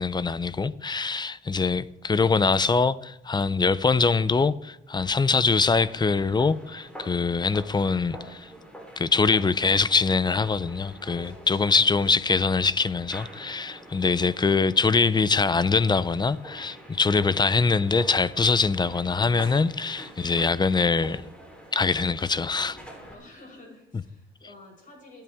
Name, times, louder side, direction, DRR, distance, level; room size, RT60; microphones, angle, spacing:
voice 1, 0.0-8.5 9.0-21.2 21.7-22.8, left 4 dB, 20° left, 0.5 m, -23 dB
sound 1, 5.6-23.1, right 1 dB, 5° left, 3.7 m, -46 dB
voice 2, 23.1-25.2, left 2 dB, 40° left, 6.1 m, -50 dB
23.5 x 8.8 x 3.6 m
cardioid pair, 90°, 20 cm